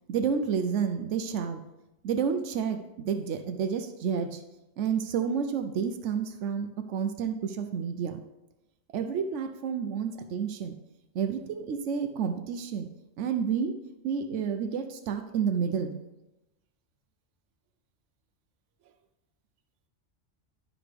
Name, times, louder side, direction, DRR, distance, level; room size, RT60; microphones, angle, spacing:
voice 1, 0.1-1.6 2.0-4.4 4.8-8.2 8.9-10.8 11.1-12.9 13.2-13.7 14.0-16.0, right 7 dB, 90° right, 7 dB, 1.0 m, -30 dB
11.5 x 4.9 x 3.4 m, 0.94 s
omnidirectional pair, 1.2 m